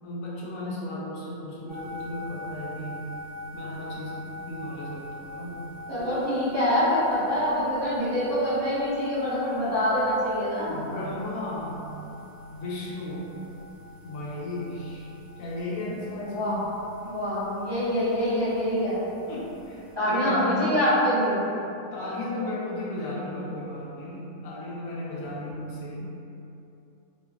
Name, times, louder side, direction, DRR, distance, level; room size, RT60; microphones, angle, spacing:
voice 1, 0.0-3.1 3.5-5.6 10.7-11.9 12.5-13.3 14.0-15.1 15.4-16.5 19.3-20.7 21.9-26.0, left 1 dB, 80° left, -5 dB, 1.1 m, -35 dB
sound 1, 1.7-19.9, left 2 dB, 15° left, 1.3 m, -44 dB
voice 2, 5.9-10.8 16.2-16.6 17.0-19.0 19.9-21.4, equal, 20° right, -14 dB, 1.1 m, -25 dB
3.8 x 3.1 x 2.3 m, 2.8 s
omnidirectional pair, 1.4 m